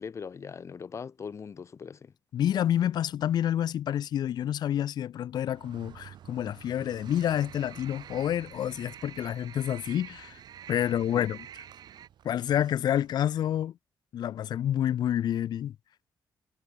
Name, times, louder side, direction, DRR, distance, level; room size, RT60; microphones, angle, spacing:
voice 1, 0.0-2.1 10.8-11.3, left 6 dB, 40° left, 1.9 m, -41 dB
voice 2, 2.3-10.4 10.7-11.4 12.2-13.7 14.1-15.8, left 10 dB, 70° left, 0.5 m, -28 dB
Car, 5.4-13.6, right 10 dB, 90° right, 4.8 m, -54 dB
sound 1, 7.1-12.1, right 10 dB, 65° right, 0.7 m, -48 dB
wide cardioid pair, 150°, 7 cm